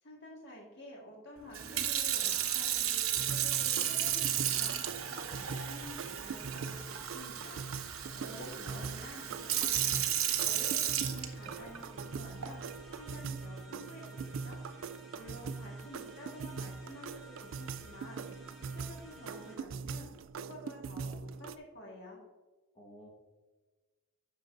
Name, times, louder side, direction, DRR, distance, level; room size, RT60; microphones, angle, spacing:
voice 1, 0.0-7.6 8.1-10.1 10.4-12.6 12.9-14.6 15.1-18.2 18.6-20.1 20.4-22.2, left 1 dB, 55° left, -2 dB, 1.7 m, -51 dB
Sink (filling or washing) / Fill (with liquid), 1.5-11.8 12.4-12.7, right 10 dB, 85° right, 1.0 m, -33 dB
sound 1, 1.7-19.6, equal, ahead, 2.4 m, -55 dB
sound 2, 3.2-21.6, right 5 dB, 70° right, 0.4 m, -42 dB
voice 2, 8.0-9.0 22.7-23.1, equal, 35° left, -2 dB, 1.6 m, -49 dB
9.3 x 6.7 x 2.6 m, 1.3 s
head